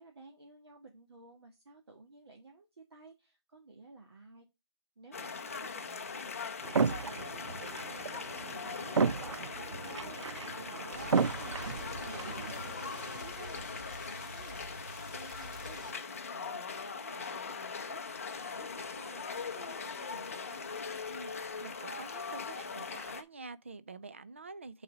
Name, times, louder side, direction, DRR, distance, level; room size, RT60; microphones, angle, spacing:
voice 1, 0.0-4.5 5.0-11.6 11.9-14.8 15.1-20.7, right 3 dB, 55° right, 1.8 m, -55 dB
sound 1, 5.1-23.2, left 5 dB, 30° left, 0.6 m, -41 dB
sound 2, 6.6-13.2, right 5 dB, 80° right, 0.5 m, -34 dB
voice 2, 10.5-11.4 21.1-24.8, right 3 dB, 25° right, 0.4 m, -47 dB
sound 3, 10.9-15.9, right 1 dB, 40° right, 2.2 m, -48 dB
5.7 x 4.0 x 6.0 m
hypercardioid pair, 170°, 15 cm